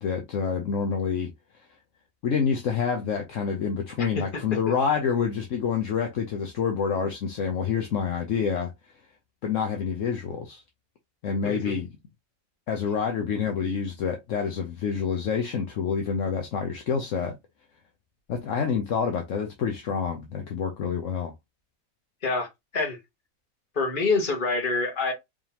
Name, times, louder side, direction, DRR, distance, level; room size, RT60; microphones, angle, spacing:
voice 1, 0.0-1.3 2.2-8.7 9.4-10.6 11.2-12.0 12.7-17.4 18.3-21.3, left 6 dB, 65° left, 1.0 m, -27 dB
voice 2, 11.4-11.8 22.2-22.5 22.7-23.0 23.7-25.1, left 3 dB, 35° left, 1.4 m, -26 dB
3.6 x 3.4 x 2.8 m
omnidirectional pair, 1.5 m